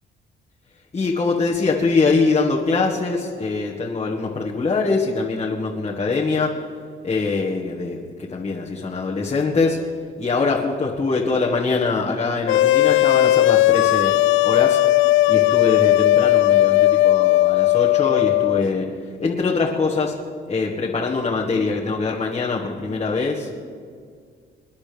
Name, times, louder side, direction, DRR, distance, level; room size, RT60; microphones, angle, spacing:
voice 1, 0.9-6.6 7.0-9.8 10.2-14.1 14.4-14.8 15.3-18.9 19.2-20.1 20.5-23.5, left 4 dB, 30° left, -3 dB, 1.8 m, -23 dB
sound 1, 12.5-18.6, left 15 dB, 80° left, 0.4 m, -16 dB
27.0 x 10.5 x 3.5 m, 2.1 s
cardioid pair, 90°, 20 cm